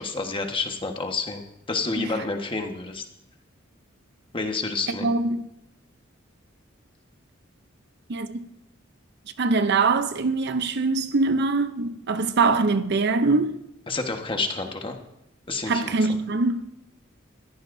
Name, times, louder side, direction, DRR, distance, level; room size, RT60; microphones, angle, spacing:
voice 1, 0.0-1.4 1.7-3.0 4.3-5.1 13.9-15.0 15.5-15.9, left 3 dB, 25° left, 1.3 m, -29 dB
voice 2, 5.0-5.5 8.1-8.4 9.4-13.6 15.7-16.8, right 3 dB, 55° right, 0.6 m, -23 dB
21.5 x 14.5 x 2.7 m
head